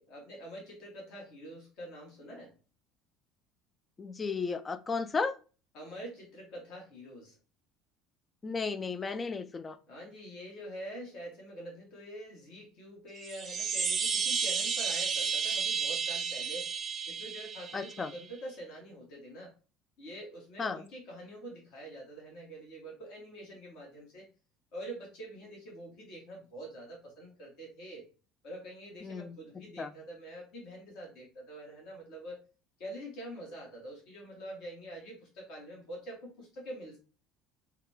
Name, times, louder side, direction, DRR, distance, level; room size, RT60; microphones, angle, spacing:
voice 1, 0.0-2.5 5.7-7.4 9.9-16.7 17.1-19.5 20.0-24.3 24.7-28.1 28.4-32.4 32.8-37.0, right 1 dB, 60° left, -1 dB, 1.3 m, -45 dB
voice 2, 4.0-5.3 8.4-9.8 17.7-18.1 20.6-20.8 29.0-29.4 29.8-29.9, left 4 dB, 30° left, 10 dB, 0.4 m, -34 dB
sound 1, 13.2-18.2, right 6 dB, 35° right, 0.5 m, -32 dB
3.6 x 2.3 x 3.2 m, 0.34 s
hypercardioid pair, 65°, 0 cm